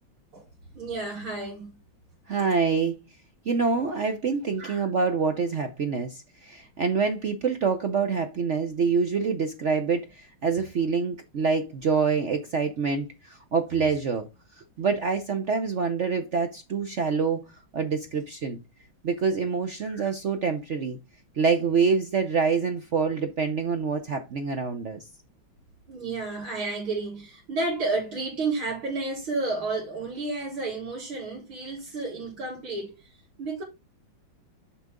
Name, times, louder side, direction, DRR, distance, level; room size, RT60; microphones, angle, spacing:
voice 1, 0.7-1.7 4.6-4.9 19.9-20.1 25.9-32.9 33.4-33.6, right 3 dB, 85° right, 4.6 m, -31 dB
voice 2, 2.3-2.9 3.5-14.3 14.6-17.4 17.7-18.6 19.0-21.0 21.4-25.0, right 5 dB, 70° right, 0.7 m, -26 dB
7.1 x 6.0 x 3.7 m
omnidirectional pair, 2.2 m